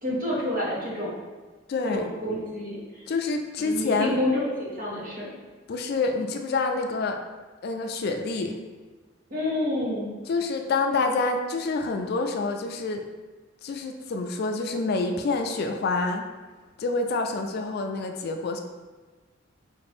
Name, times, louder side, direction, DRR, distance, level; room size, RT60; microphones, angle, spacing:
voice 1, 0.0-1.2 1.9-3.0 3.6-5.3 9.3-10.1, left 1 dB, 45° right, -5 dB, 1.2 m, -28 dB
voice 2, 1.7-2.0 3.1-4.2 5.7-7.2 7.6-8.6 10.3-13.0 13.6-16.3 16.8-18.6, left 3 dB, 50° left, 5 dB, 0.3 m, -27 dB
5.0 x 2.5 x 3.4 m, 1.3 s
head